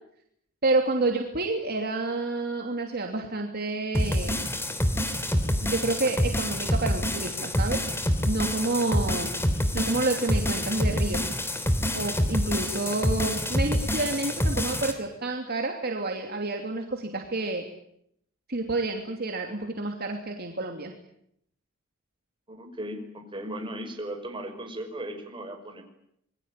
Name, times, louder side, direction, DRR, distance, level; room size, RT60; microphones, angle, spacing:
voice 1, 0.6-4.5 5.6-7.8 8.3-9.3 9.7-11.3 11.9-17.6 18.5-20.9, right 2 dB, 50° right, 2 dB, 3.0 m, -29 dB
sound 1, 3.9-14.9, equal, 10° left, 3.2 m, -27 dB
voice 2, 22.5-25.8, right 1 dB, 25° right, 4 dB, 5.7 m, -37 dB
27.0 x 22.0 x 9.1 m, 0.74 s
head